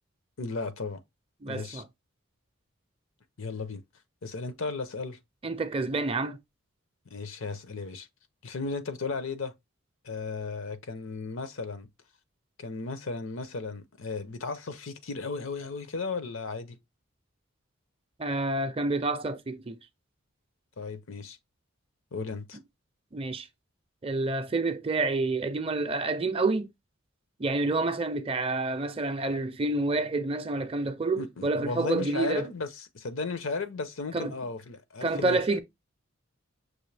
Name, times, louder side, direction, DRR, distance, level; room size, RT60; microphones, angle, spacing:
voice 1, 0.4-1.0 1.5-1.8 3.4-3.8 4.2-5.2 7.1-8.1 8.4-9.5 10.0-11.9 12.6-16.8 20.8-21.4 22.1-22.6 31.2-35.6, left 4 dB, 75° left, 0.7 m, -35 dB
voice 2, 1.4-1.8 5.4-6.4 18.2-19.8 23.1-23.5 24.0-26.7 27.4-32.5 34.1-34.3 35.0-35.6, right 3 dB, 25° right, 0.5 m, -28 dB
6.1 x 2.7 x 3.3 m
head